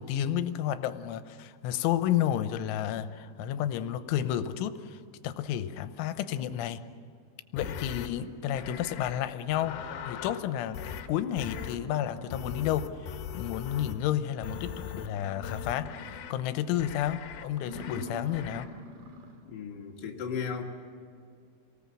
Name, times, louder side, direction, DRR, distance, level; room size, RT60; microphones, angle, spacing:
voice 1, 0.0-6.8 7.5-18.7, left 11 dB, 85° left, 10 dB, 3.3 m, -31 dB
sound 1, 7.6-8.1 8.6-9.2 9.5-10.4 10.7-11.1 11.4-11.8 12.3-14.0 14.4-15.1 15.4-16.3 16.8-17.4 17.7-18.0 18.3-18.7, left 9 dB, 65° left, 2.8 m, -40 dB
sound 2, 11.9-13.2 13.6-13.7 14.1-14.2 14.4-16.3 16.7-17.0 17.5-19.5, equal, 45° right, 2.0 m, -46 dB
voice 2, 19.4-20.6, left 6 dB, 45° left, 0 dB, 1.4 m, -35 dB
27.5 x 19.0 x 7.5 m, 2.3 s
omnidirectional pair, 5.5 m